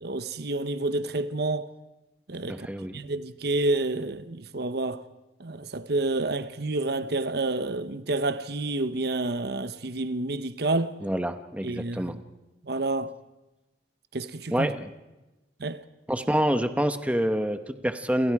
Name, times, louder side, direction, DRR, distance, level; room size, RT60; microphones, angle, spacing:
voice 1, 0.0-1.7 2.3-2.7 2.9-5.0 5.4-10.9 11.6-12.2 12.6-13.1 14.1-14.7 15.6-15.8, right 2 dB, 60° right, 0.9 m, -29 dB
voice 2, 2.5-3.0 11.0-12.2 14.5-14.9 16.1-18.3, equal, 10° right, 1.1 m, -27 dB
29.5 x 28.0 x 4.8 m
head